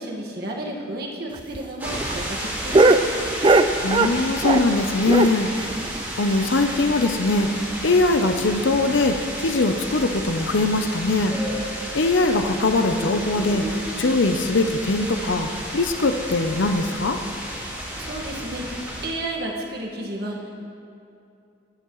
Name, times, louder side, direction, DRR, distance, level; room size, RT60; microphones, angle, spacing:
voice 1, 0.0-2.9 18.0-20.5, right 1 dB, 55° right, -1 dB, 1.6 m, -32 dB
sound 1, 1.3-4.8 5.1-7.0 7.3-7.4 7.7-7.8 8.2-8.3 8.9-9.2 10.0-10.2, right 2 dB, 25° right, 0.4 m, -21 dB
sound 2, 1.8-19.1, equal, 10° right, 1.9 m, -32 dB
voice 2, 3.8-5.5 6.2-11.3 11.9-17.2, left 2 dB, 75° left, 6 dB, 0.7 m, -21 dB
19.0 x 12.0 x 3.1 m, 2.6 s
head